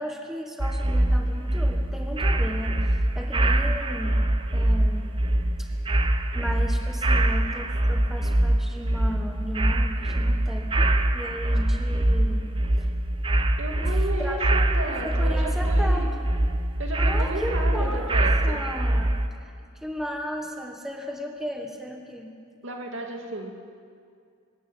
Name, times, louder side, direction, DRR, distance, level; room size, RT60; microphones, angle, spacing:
voice 1, 0.0-4.2 4.5-5.1 5.6-5.7 6.3-12.5 12.8-12.9 13.8-14.4 15.0-16.1 17.0-19.5 19.8-22.3, equal, ahead, 2 dB, 1.4 m, -35 dB
sound 1, 0.6-19.3, right 1 dB, 25° right, 0.8 m, -24 dB
voice 2, 13.6-16.1 16.8-18.6 22.6-23.5, right 1 dB, 65° right, 2 dB, 2.6 m, -33 dB
24.0 x 13.0 x 9.1 m, 2.3 s
head